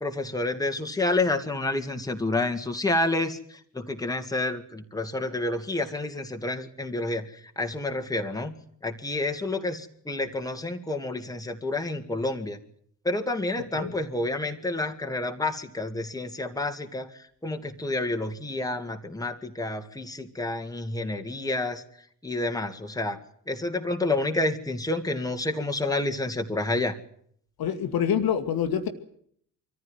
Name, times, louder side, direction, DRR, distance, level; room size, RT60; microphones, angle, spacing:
voice 1, 0.0-8.5 8.8-12.6 13.0-21.8 22.2-23.2 23.5-27.0, left 2 dB, 10° left, 4 dB, 2.2 m, -29 dB
voice 2, 27.6-28.9, left 8 dB, 50° left, 6 dB, 1.8 m, -26 dB
24.5 x 14.5 x 9.4 m, 0.66 s
figure-of-eight pair, 45°, 47 cm